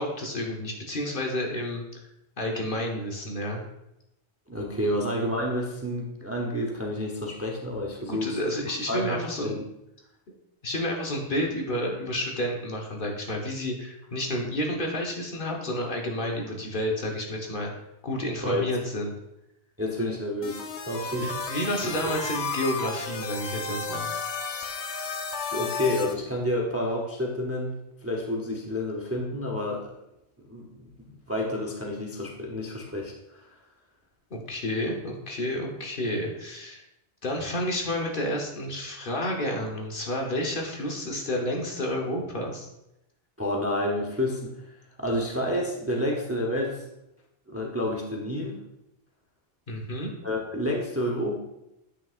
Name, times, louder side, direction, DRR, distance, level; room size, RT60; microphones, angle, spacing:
voice 1, 0.0-1.8 2.4-3.6 8.0-9.6 10.6-17.7 18.0-19.1 21.1-24.1 34.3-36.8 37.2-42.7 49.7-50.1, left 1 dB, 50° left, 0 dB, 1.2 m, -30 dB
voice 2, 4.5-8.4 8.9-9.6 18.4-18.7 19.8-21.3 25.5-29.9 30.4-33.1 43.4-44.5 45.0-46.8 47.5-48.6 50.2-51.4, left 1 dB, 15° right, -1 dB, 0.7 m, -29 dB
sound 1, 20.4-26.1, left 4 dB, 80° left, 1.0 m, -33 dB
8.3 x 6.0 x 2.4 m, 0.86 s
omnidirectional pair, 1.1 m